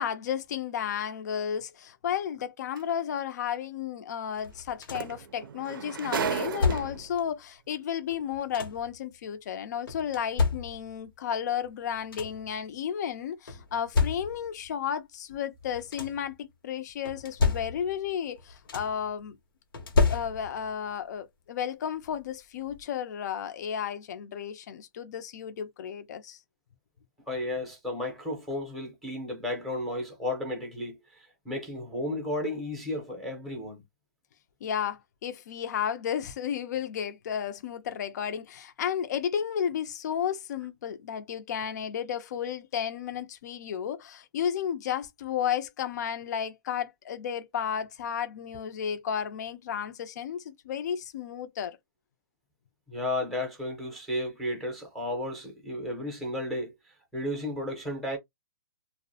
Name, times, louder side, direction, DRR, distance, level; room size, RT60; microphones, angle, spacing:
voice 1, 0.0-19.4 20.1-26.4 34.6-51.8, left 8 dB, 55° left, 0.4 m, -33 dB
sound 1, 2.8-2.9 4.6-4.7 4.9-7.2 8.1-8.2, right 6 dB, 90° right, 0.5 m, -33 dB
sound 2, 4.4-5.2 6.2-7.2 8.1-9.0 9.9-11.1 11.6-11.7 11.9-12.6 13.5-14.6 15.6-16.3 17.1-18.1 18.4-19.1 19.7-20.7 22.0-22.1 22.6-22.8, left 4 dB, 90° left, 0.8 m, -30 dB
voice 2, 27.3-33.8 52.9-58.2, left 1 dB, ahead, 0.6 m, -33 dB
2.4 x 2.1 x 2.6 m
hypercardioid pair, 165°, 11 cm